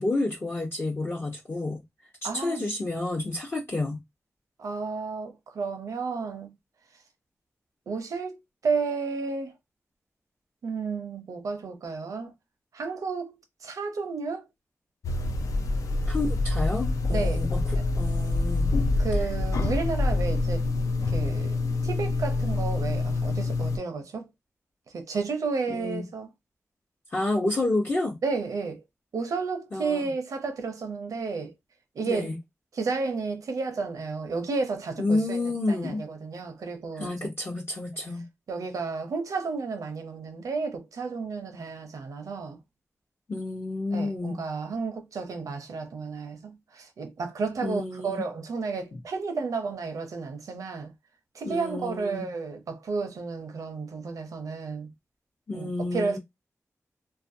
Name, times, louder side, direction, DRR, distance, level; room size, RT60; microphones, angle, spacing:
voice 1, 0.0-1.8 2.3-4.0 16.1-18.7 25.7-26.1 27.1-28.2 29.7-30.1 32.0-32.4 35.0-36.0 37.0-38.2 43.3-44.4 47.6-48.3 48.9-49.0 51.4-52.3 55.5-56.2, left 2 dB, 45° left, 0.7 m, -30 dB
voice 2, 2.2-2.7 4.6-6.6 7.9-9.5 10.6-12.3 12.7-14.5 17.1-17.4 19.0-20.7 21.1-24.3 24.9-26.3 28.2-28.8 29.1-31.5 31.9-32.3 32.7-37.3 38.5-42.6 43.9-50.9 51.3-54.9 55.5-56.2, right 4 dB, 80° right, 0.5 m, -32 dB
sound 1, 15.0-23.8, left 2 dB, 80° left, 0.3 m, -26 dB
2.4 x 2.2 x 2.6 m
cardioid pair, 55°, 6 cm